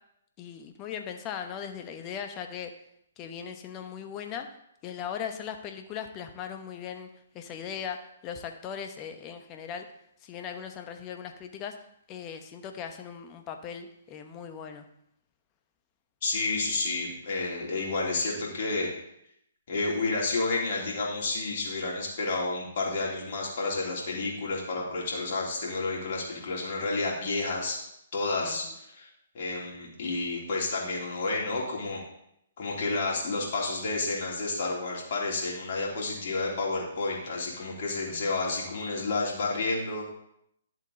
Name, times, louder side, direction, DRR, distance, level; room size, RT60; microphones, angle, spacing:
voice 1, 0.4-2.7 3.2-4.5 4.8-7.1 7.3-9.9 10.2-11.8 12.1-14.8 28.4-28.7 38.1-38.3, left 8 dB, 25° left, 6 dB, 1.1 m, -39 dB
voice 2, 16.2-18.9 19.7-27.8 28.1-29.1 29.3-32.0 32.6-40.2, left 3 dB, 50° left, -3 dB, 3.3 m, -30 dB
11.0 x 7.4 x 4.0 m, 0.76 s
figure-of-eight pair, 130°, 0 cm